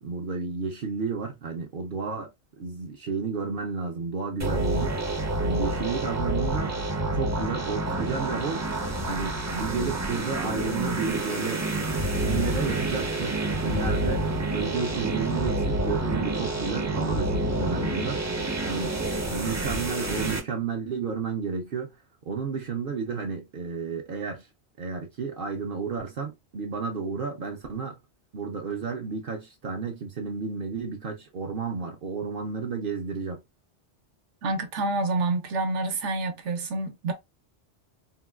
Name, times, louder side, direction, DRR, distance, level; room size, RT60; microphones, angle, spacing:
voice 1, 0.0-2.3 2.6-4.9 5.4-6.7 7.1-8.6 9.1-11.7 12.1-14.2 14.5-19.0 19.3-22.0 22.3-24.5 24.8-28.0 28.3-33.4, right 5 dB, 60° right, 0.7 m, -32 dB
sound 1, 4.4-20.4, right 2 dB, 20° right, 0.4 m, -28 dB
voice 2, 34.4-37.1, right 3 dB, 80° right, 1.1 m, -28 dB
3.8 x 2.2 x 2.2 m
omnidirectional pair, 1.2 m